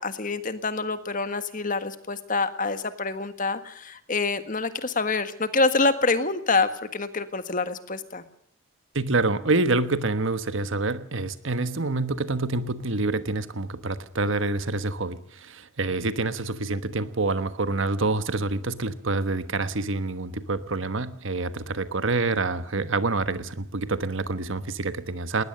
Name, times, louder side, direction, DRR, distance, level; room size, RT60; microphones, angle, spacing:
voice 1, 0.0-8.2, left 3 dB, 40° left, 11 dB, 1.6 m, -26 dB
voice 2, 8.9-25.4, right 3 dB, 65° right, 12 dB, 1.3 m, -27 dB
20.0 x 20.0 x 6.6 m, 0.67 s
head